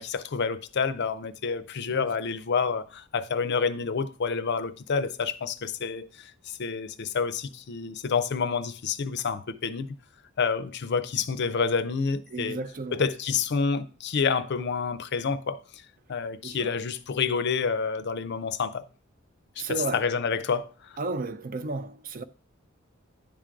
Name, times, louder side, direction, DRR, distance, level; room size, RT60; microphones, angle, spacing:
voice 1, 0.0-10.0 10.4-12.6 12.9-18.9 19.6-20.9, left 5 dB, 55° left, 0.5 m, -28 dB
voice 2, 12.3-13.0 16.4-16.7 19.6-20.0 21.0-22.2, right 3 dB, 40° right, 0.5 m, -33 dB
10.5 x 3.8 x 4.5 m
head